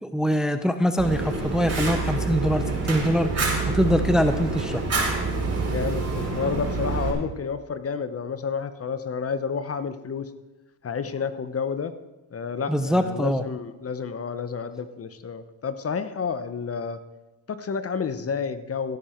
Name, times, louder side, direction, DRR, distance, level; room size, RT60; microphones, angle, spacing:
voice 1, 0.0-4.8 12.7-13.4, equal, ahead, 9 dB, 0.7 m, -23 dB
Fire, 1.0-7.1, right 3 dB, 35° right, 4.8 m, -27 dB
voice 2, 5.7-10.3 10.8-11.9 12.3-17.0 17.5-19.0, left 6 dB, 35° left, 11 dB, 1.0 m, -30 dB
16.5 x 9.0 x 4.5 m, 1.1 s
supercardioid pair, 75°, 40 cm